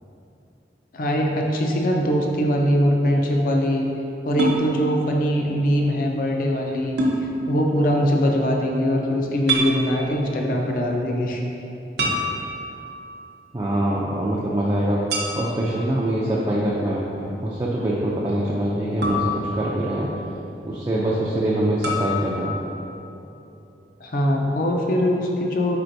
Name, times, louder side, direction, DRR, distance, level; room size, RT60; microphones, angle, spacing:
voice 1, 0.9-3.9 4.2-7.0 7.5-11.4 24.0-25.8, equal, 50° left, 1 dB, 0.4 m, -22 dB
sound 1, 4.4-4.6 7.0-7.2 9.5-9.7 12.0-12.9 15.1-15.7 19.0-19.9 21.8-22.2, equal, 70° right, 0.6 m, -25 dB
voice 2, 13.5-15.0 15.4-20.1 20.7-22.6, right 1 dB, 20° right, -6 dB, 0.3 m, -24 dB
4.4 x 4.2 x 2.6 m, 2.9 s
head